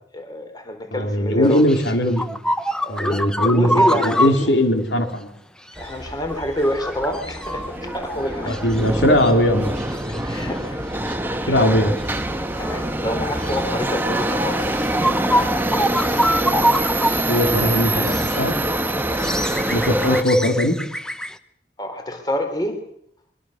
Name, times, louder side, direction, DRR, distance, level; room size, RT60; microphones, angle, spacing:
voice 1, 0.1-1.6 2.8-4.6 5.8-8.7 10.1-11.0 11.3-11.6 12.6-15.0 15.3-16.0 19.1-19.3 21.8-22.8, left 1 dB, 20° left, 6 dB, 3.8 m, -27 dB
voice 2, 0.9-2.4 2.9-5.3 8.5-9.7 10.1-10.2 11.5-11.9 17.3-18.5 19.7-20.8, equal, 75° left, 5 dB, 3.4 m, -19 dB
sound 1, 1.5-4.5 5.8-5.9 6.2-8.9 9.2-9.3 9.8-10.4 11.1-11.2 12.0-12.2 13.4-13.6 14.3-14.4 14.7-17.2 17.5-17.6 18.0-18.4 19.0-21.4, equal, 5° left, 1.0 m, -25 dB
Subway metro underground, 5.8-20.2, right 1 dB, 10° right, 1.4 m, -25 dB
24.0 x 23.5 x 6.6 m, 0.70 s
head